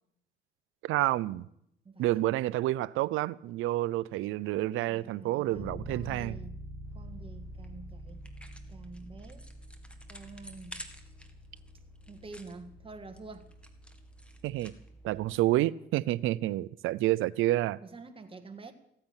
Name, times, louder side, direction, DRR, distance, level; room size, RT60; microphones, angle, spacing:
voice 1, 0.8-1.5 2.0-6.4 14.4-14.7 15.0-17.8, right 16 dB, 90° right, 0.5 m, -29 dB
voice 2, 1.8-2.2 4.9-6.6 6.9-8.3 8.7-9.5 10.1-10.8 12.1-13.5 17.8-18.7, right 3 dB, 25° right, 1.8 m, -48 dB
Bass guitar, 5.5-15.4, equal, 55° left, 6.1 m, -47 dB
sound 1, 6.9-15.1, equal, 5° left, 2.0 m, -53 dB
15.5 x 9.6 x 8.9 m
cardioid pair, 90°, 20 cm